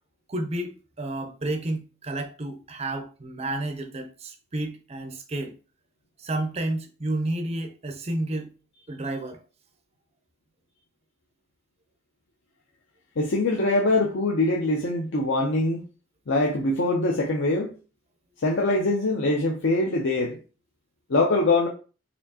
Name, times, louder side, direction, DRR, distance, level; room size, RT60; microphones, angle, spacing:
voice 1, 0.3-5.5 6.2-8.5 8.9-9.4, right 1 dB, 30° right, 0.5 m, -31 dB
voice 2, 13.2-15.8 16.3-17.7 18.4-20.4 21.1-21.7, left 2 dB, 55° left, 0.6 m, -23 dB
4.3 x 2.7 x 2.8 m
head